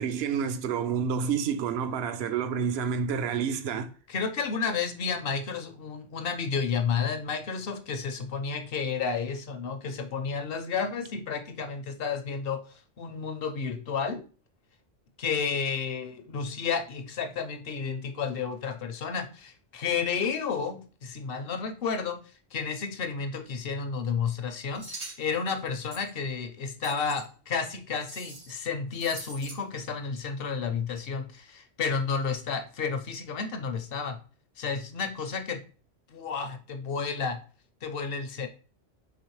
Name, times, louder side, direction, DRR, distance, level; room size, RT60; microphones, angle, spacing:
voice 1, 0.0-3.9, right 7 dB, 65° right, 0.7 m, -29 dB
voice 2, 4.1-12.6 13.0-14.2 15.2-22.2 22.5-34.2 34.6-35.6 36.1-37.4 37.8-38.5, left 5 dB, 60° left, 0.7 m, -31 dB
sound 1, 24.7-25.2 25.9-26.1 26.8-27.2 28.0-28.6 28.9-29.6, right 1 dB, 90° right, 2.3 m, -42 dB
4.9 x 3.3 x 3.1 m
omnidirectional pair, 1.3 m